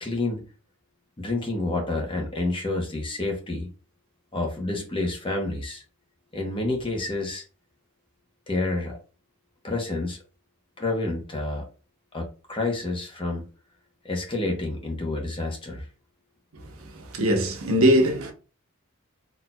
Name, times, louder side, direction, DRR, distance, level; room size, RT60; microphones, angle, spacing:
voice 1, 0.0-0.4 1.2-3.7 4.3-5.8 6.3-7.4 8.5-9.0 9.6-10.2 10.8-11.7 12.1-13.4 14.0-15.9, left 2 dB, 25° left, 0.8 m, -29 dB
voice 2, 16.5-18.3, equal, 75° right, 0.9 m, -22 dB
4.1 x 2.7 x 2.2 m
head